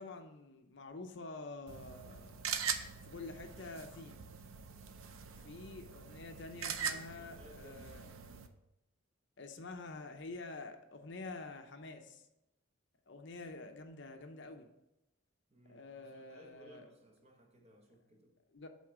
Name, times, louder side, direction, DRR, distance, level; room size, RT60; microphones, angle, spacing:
voice 1, 0.0-2.4 3.0-4.2 5.4-8.1 9.4-12.3 13.1-14.7 15.7-16.9 18.5-18.7, left 3 dB, 55° left, 0.6 m, -48 dB
sound 1, 1.7-8.5, right 7 dB, 70° right, 0.6 m, -42 dB
voice 2, 6.8-8.2 15.5-18.3, equal, 30° right, 1.0 m, -61 dB
8.2 x 3.8 x 6.1 m
head